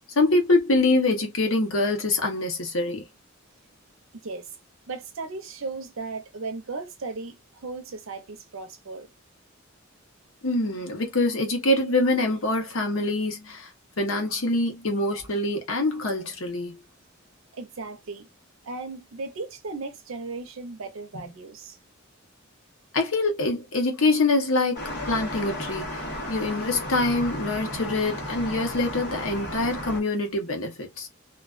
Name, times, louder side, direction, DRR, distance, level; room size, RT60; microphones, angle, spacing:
voice 1, 0.2-3.0 10.4-13.7 14.0-16.8 22.9-31.1, left 2 dB, 80° left, 0.9 m, -25 dB
voice 2, 4.9-9.1 17.5-18.3 18.6-21.8, right 3 dB, 75° right, 0.6 m, -36 dB
sound 1, 24.7-30.0, left 1 dB, 55° left, 1.1 m, -34 dB
2.3 x 2.2 x 2.4 m
head